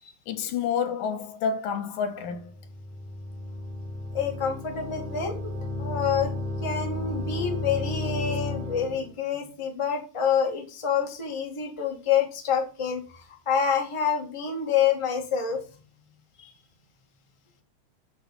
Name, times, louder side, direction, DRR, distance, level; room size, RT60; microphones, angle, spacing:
voice 1, 0.3-2.5, left 6 dB, 75° left, 2.7 m, -29 dB
sound 1, 2.3-9.1, left 2 dB, 5° right, 2.4 m, -33 dB
voice 2, 4.1-5.5 5.8-6.3 6.6-15.6 16.4-16.5, left 7 dB, 15° left, 1.3 m, -27 dB
8.0 x 5.8 x 7.1 m
omnidirectional pair, 4.1 m